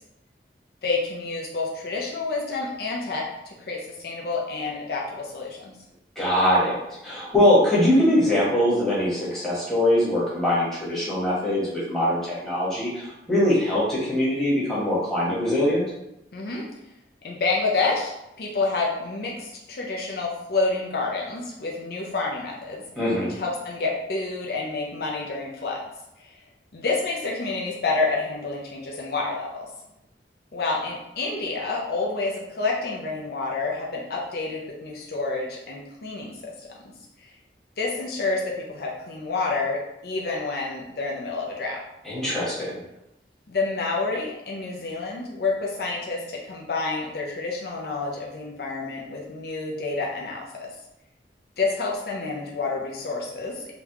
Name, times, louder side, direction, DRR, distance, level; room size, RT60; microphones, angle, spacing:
voice 1, 0.8-3.2 3.6-5.7 16.3-16.6 17.2-22.8 23.3-25.8 26.2-26.4 26.7-29.7 30.5-36.7 37.2-37.3 37.8-39.8 40.0-41.8 43.5-50.7 51.6-53.7, left 3 dB, 60° left, -2 dB, 0.5 m, -28 dB
voice 2, 6.2-6.8 7.0-15.8 22.9-23.4 42.0-42.7, left 1 dB, 5° left, -10 dB, 1.2 m, -22 dB
4.0 x 2.2 x 2.9 m, 0.89 s
head